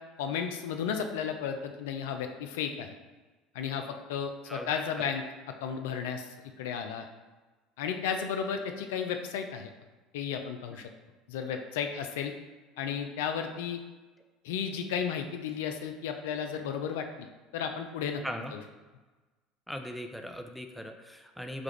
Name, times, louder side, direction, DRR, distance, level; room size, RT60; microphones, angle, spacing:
voice 1, 0.2-2.9 3.5-5.2 5.6-6.3 6.6-7.1 7.8-9.7 10.1-10.9 11.3-12.3 12.8-13.8 14.4-17.3 17.5-18.2 18.5-18.6, left 7 dB, 75° left, 5 dB, 0.3 m, -33 dB
voice 2, 19.7-21.6, equal, ahead, 5 dB, 0.4 m, -39 dB
4.9 x 2.3 x 3.1 m, 1.2 s
hypercardioid pair, 70°, 0 cm